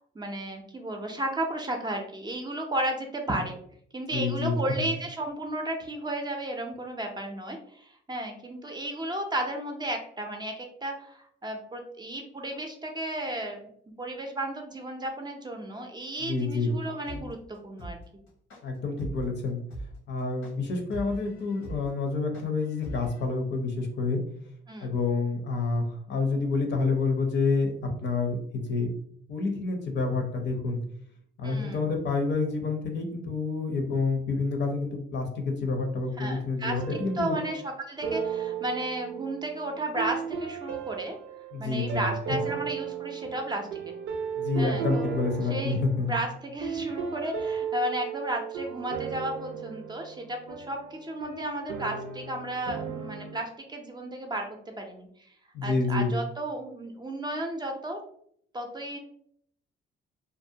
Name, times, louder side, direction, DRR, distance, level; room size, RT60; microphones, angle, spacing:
voice 1, 0.1-3.6 3.9-13.6 14.0-18.0 24.7-24.9 31.4-31.9 36.2-41.2 41.6-43.9 44.6-45.1 45.5-54.5 54.8-55.3 55.6-58.0 58.5-59.0, right 1 dB, 20° right, 3 dB, 0.5 m, -33 dB
voice 2, 4.1-4.6 16.2-16.8 18.6-19.6 20.1-24.2 24.8-28.9 29.3-30.8 31.4-37.4 41.5-42.1 44.4-46.1 55.5-56.2, left 3 dB, 60° left, 3 dB, 0.7 m, -28 dB
sound 1, 17.1-23.2, right 1 dB, 85° left, 1.0 m, -40 dB
sound 2, 36.8-37.7 38.0-53.4, right 7 dB, 90° right, 0.5 m, -35 dB
2.6 x 2.1 x 2.7 m, 0.66 s
cardioid pair, 90°, 20 cm